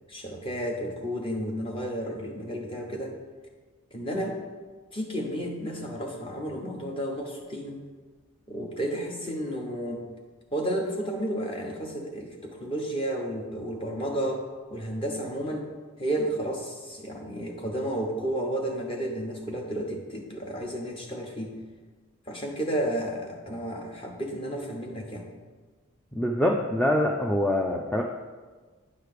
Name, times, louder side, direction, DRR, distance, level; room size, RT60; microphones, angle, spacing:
voice 1, 0.1-3.2 3.9-4.4 4.9-7.8 8.5-10.0 10.5-14.4 14.7-15.7 16.0-21.6 22.3-25.2, right 1 dB, 25° left, 1 dB, 1.0 m, -32 dB
voice 2, 26.1-28.0, left 1 dB, 5° left, -1 dB, 0.3 m, -24 dB
9.5 x 3.3 x 6.6 m, 1.4 s
head